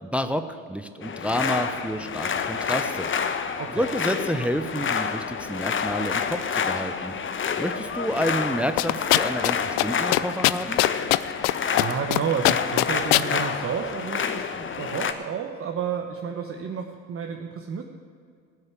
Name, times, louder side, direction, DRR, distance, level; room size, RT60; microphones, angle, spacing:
voice 1, 0.0-3.1 3.7-7.1 7.6-10.8, equal, 5° right, 9 dB, 0.7 m, -29 dB
sound 1, 1.0-15.1, left 6 dB, 30° left, 1.1 m, -28 dB
sound 2, 8.8-9.5 9.8-9.9 10.1-11.5 11.8-12.2 12.4-13.3, left 20 dB, 70° left, 0.6 m, -20 dB
voice 2, 11.5-17.8, right 7 dB, 30° right, 3 dB, 1.2 m, -31 dB
17.5 x 6.5 x 8.5 m, 2.2 s
hypercardioid pair, 75°, 41 cm